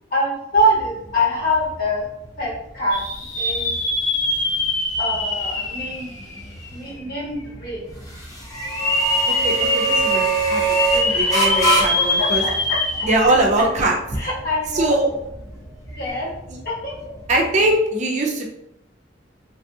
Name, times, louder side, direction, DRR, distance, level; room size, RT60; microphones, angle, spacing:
voice 1, 0.1-2.1 2.4-3.0 3.3-3.7 5.0-6.1 6.7-7.8 11.1-13.1 14.2-14.9 15.9-16.3 16.6-16.9, equal, 50° left, -6 dB, 1.3 m, -24 dB
sound 1, 0.5-17.7, right 2 dB, 20° left, 0.8 m, -27 dB
sound 2, 2.9-6.9 7.4-7.5 8.6-13.5 13.9-14.0 15.9-16.1, left 2 dB, 70° left, 0.8 m, -23 dB
voice 2, 9.3-12.4 13.0-14.0 14.2-14.3 14.7-15.1 16.5-16.6 17.3-18.4, right 1 dB, 40° right, 0 dB, 0.5 m, -21 dB
3.2 x 2.4 x 2.7 m, 0.84 s
head